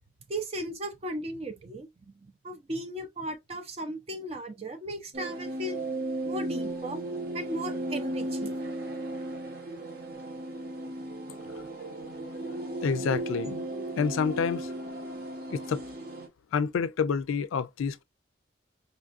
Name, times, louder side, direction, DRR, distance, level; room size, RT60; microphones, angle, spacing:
voice 1, 0.3-1.9 2.4-5.8 6.2-7.0 7.3-8.6, right 1 dB, 30° right, 0.5 m, -36 dB
sound 1, 5.1-16.3, right 1 dB, 50° right, 1.1 m, -35 dB
voice 2, 12.8-13.7 14.0-14.7 15.5-15.8 16.5-18.0, left 6 dB, 90° left, 0.4 m, -28 dB
5.1 x 2.4 x 2.4 m
head